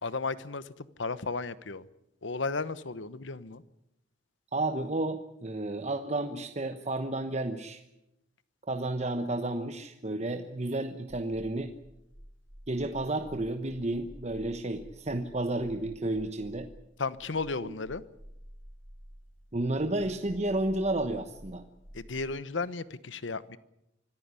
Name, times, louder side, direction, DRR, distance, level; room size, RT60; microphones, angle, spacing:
voice 1, 0.0-1.8 2.2-3.6 17.0-18.0 21.9-23.6, left 4 dB, 75° left, 16 dB, 1.1 m, -34 dB
voice 2, 4.5-7.8 8.7-11.7 12.7-16.7 17.6-17.7 19.5-21.6, right 2 dB, 35° right, 6 dB, 1.1 m, -31 dB
sound 1, 11.1-22.3, equal, 5° left, 6.4 m, -51 dB
25.0 x 14.5 x 9.7 m, 0.85 s
head